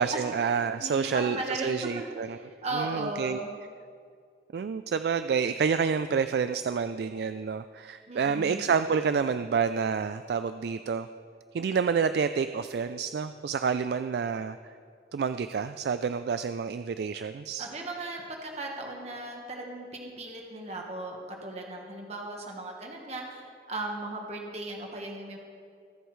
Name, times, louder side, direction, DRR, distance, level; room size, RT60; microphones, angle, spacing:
voice 1, 0.0-2.4 2.7-3.4 4.5-11.1 11.5-14.6 15.1-17.7, right 6 dB, 60° right, 11 dB, 0.3 m, -28 dB
voice 2, 0.8-3.5 8.1-8.7 17.6-23.4 23.7-25.4, right 2 dB, 40° right, 0 dB, 1.3 m, -37 dB
23.5 x 8.0 x 3.2 m, 2.2 s
head